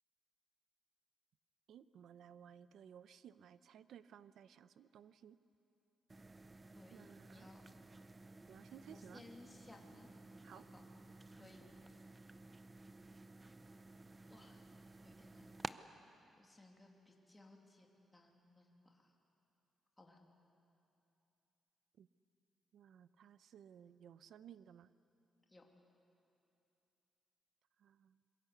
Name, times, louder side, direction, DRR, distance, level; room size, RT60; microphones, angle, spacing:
voice 1, 1.7-5.4 6.9-7.5 8.5-9.2 10.4-10.6 22.0-22.1 22.7-24.9 27.8-28.2, right 9 dB, 75° right, 14 dB, 0.7 m, -58 dB
sound 1, 6.1-15.7, right 2 dB, 20° right, 0.6 m, -54 dB
voice 2, 6.7-7.6 8.9-10.1 10.4-10.8 11.3-12.0 14.3-14.6 15.0-15.5 16.3-17.9 18.1-19.1 20.0-20.2 25.5-25.6, left 2 dB, 15° left, 0 dB, 2.8 m, -61 dB
26.5 x 22.5 x 8.3 m, 2.8 s
cardioid pair, 145°, 0 cm